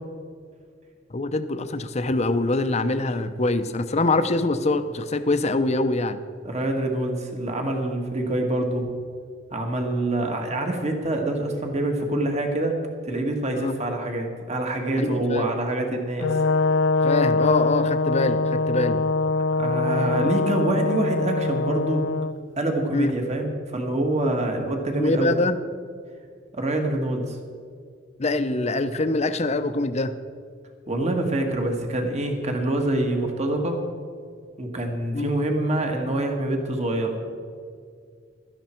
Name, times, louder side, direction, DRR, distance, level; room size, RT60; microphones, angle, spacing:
voice 1, 1.1-6.2 13.6-13.7 15.0-15.4 17.0-19.0 22.9-23.1 25.0-25.6 28.2-30.1 35.1-35.3, left 2 dB, 35° left, 10 dB, 0.7 m, -24 dB
voice 2, 6.4-8.9 9.5-12.8 13.0-16.4 19.6-22.0 22.6-25.4 26.5-27.4 30.9-33.8 34.6-37.2, right 1 dB, 35° right, 3 dB, 1.6 m, -26 dB
Brass instrument, 16.2-22.3, left 3 dB, 75° left, 0.4 m, -23 dB
16.0 x 12.5 x 4.5 m, 2.1 s
head